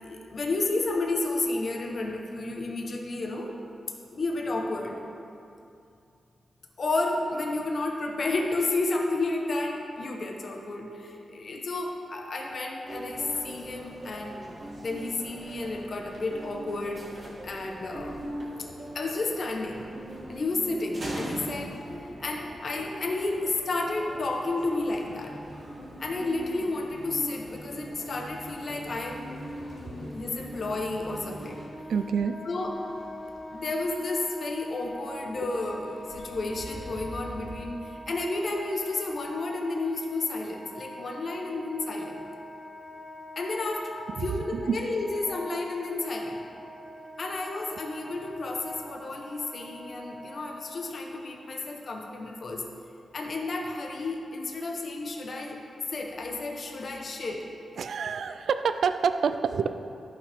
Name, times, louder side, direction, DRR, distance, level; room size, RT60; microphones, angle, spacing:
voice 1, 0.0-3.5 4.1-5.0 6.8-14.4 14.8-18.2 18.9-19.9 20.3-21.8 22.2-25.4 26.0-31.6 32.4-32.8 33.5-42.2 43.4-46.5 47.2-52.6 53.1-55.6 55.9-57.4, left 2 dB, 50° left, 1 dB, 0.9 m, -31 dB
sound 1, 12.9-31.7, right 1 dB, 45° right, 2.1 m, -41 dB
sound 2, 28.2-37.7, left 1 dB, 20° left, 1.6 m, -50 dB
Wind instrument woodwind instrument, 31.4-50.9, equal, 20° right, 2.1 m, -44 dB
voice 2, 31.9-32.4 44.5-44.8 57.8-59.7, right 6 dB, 75° right, 10 dB, 0.3 m, -27 dB
13.0 x 5.9 x 3.4 m, 2.6 s
wide cardioid pair, 130°, 0 cm